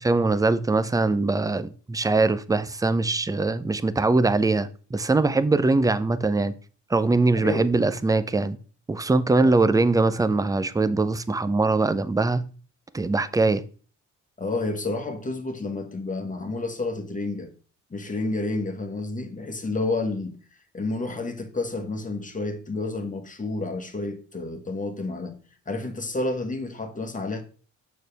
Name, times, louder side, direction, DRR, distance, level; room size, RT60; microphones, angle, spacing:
voice 1, 0.0-6.5 6.9-8.6 8.9-12.5 12.9-13.6, right 3 dB, 10° right, 0.6 m, -22 dB
voice 2, 7.4-7.7 9.4-9.5 14.4-17.5 17.9-20.4 20.7-25.4 25.7-27.4, left 2 dB, 25° left, 1.4 m, -30 dB
6.5 x 6.5 x 3.4 m
cardioid pair, 90°, 30 cm